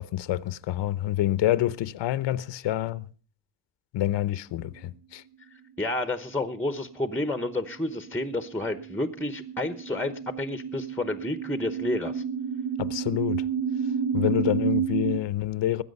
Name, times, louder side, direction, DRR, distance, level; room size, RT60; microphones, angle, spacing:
voice 1, 0.0-3.1 3.9-5.2 12.8-13.4 14.1-15.8, left 13 dB, 80° left, 0.9 m, -27 dB
voice 2, 5.8-12.2, left 2 dB, 5° left, 0.9 m, -30 dB
sound 1, 6.6-15.2, right 7 dB, 60° right, 0.9 m, -31 dB
20.0 x 8.8 x 5.4 m
cardioid pair, 135°, 43 cm